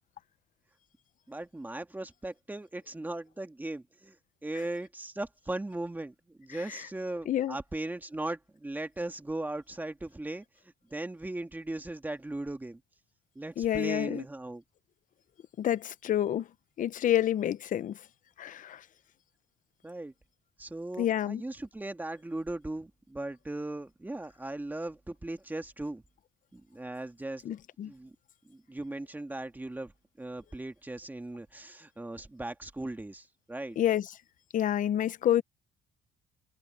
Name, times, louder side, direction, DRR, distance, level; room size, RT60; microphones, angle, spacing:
voice 1, 1.3-4.2 4.4-10.4 10.9-12.8 13.4-14.6 19.8-20.1 20.6-26.0 26.5-27.5 27.8-28.2 28.4-29.9 30.2-33.8, right 2 dB, 10° right, 1.8 m, -38 dB
voice 2, 13.6-14.2 15.6-16.5 16.8-18.0 18.4-18.8 21.0-21.4 27.4-27.9 33.8-34.1 34.5-35.4, left 11 dB, 50° left, 0.9 m, -28 dB
cardioid pair, 110°, 17 cm